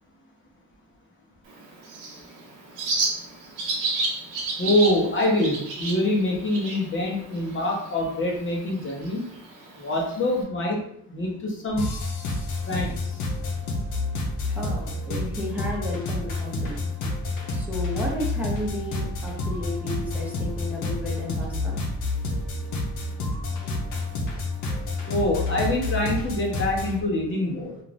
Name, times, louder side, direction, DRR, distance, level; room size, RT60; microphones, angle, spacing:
Bird, 1.5-10.4, right 3 dB, 85° right, 0.9 m, -33 dB
voice 1, 4.6-9.3 9.8-11.9 12.7-13.2 25.1-27.8, left 1 dB, 40° left, -2 dB, 0.9 m, -25 dB
sound 1, 11.8-27.0, left 2 dB, 90° left, 0.8 m, -29 dB
voice 2, 14.5-16.8 17.5-21.8 22.7-22.8 23.6-24.0, left 1 dB, 5° right, -4 dB, 0.8 m, -33 dB
2.5 x 2.4 x 3.3 m, 0.70 s
cardioid pair, 90°, 30 cm